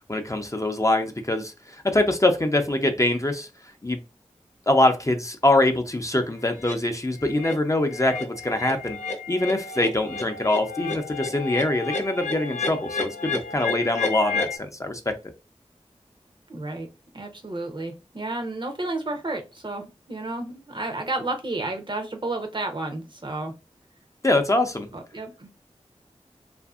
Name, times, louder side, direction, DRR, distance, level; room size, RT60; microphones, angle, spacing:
voice 1, 0.1-3.5 3.8-4.0 4.7-9.0 9.3-15.1 24.2-24.9, left 1 dB, 25° left, 5 dB, 0.5 m, -23 dB
sound 1, 6.6-6.8 7.2-7.5 7.9-14.6, left 4 dB, 80° left, 0.6 m, -31 dB
voice 2, 16.5-16.9 17.1-23.5 24.9-25.5, right 2 dB, 45° right, 3 dB, 0.6 m, -31 dB
2.6 x 2.5 x 2.4 m, 0.28 s
wide cardioid pair, 45°, 12 cm